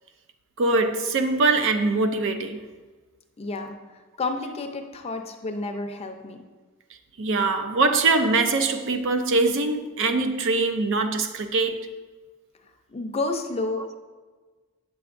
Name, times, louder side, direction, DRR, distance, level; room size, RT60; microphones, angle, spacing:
voice 1, 0.6-2.6 7.2-11.9, right 3 dB, 60° right, 0.5 m, -23 dB
voice 2, 3.4-3.8 4.2-6.4 12.9-13.9, left 2 dB, 30° left, 0.5 m, -30 dB
8.8 x 6.9 x 2.5 m
head